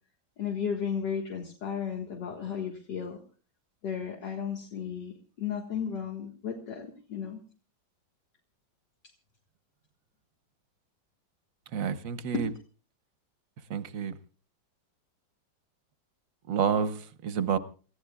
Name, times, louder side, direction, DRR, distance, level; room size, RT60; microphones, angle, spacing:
voice 1, 0.4-3.2 3.8-7.4 12.3-12.4, left 7 dB, 65° left, 2.4 m, -34 dB
voice 2, 11.7-12.5 13.7-14.1 16.5-17.6, right 7 dB, 55° right, 1.1 m, -29 dB
30.0 x 15.0 x 2.4 m
omnidirectional pair, 2.0 m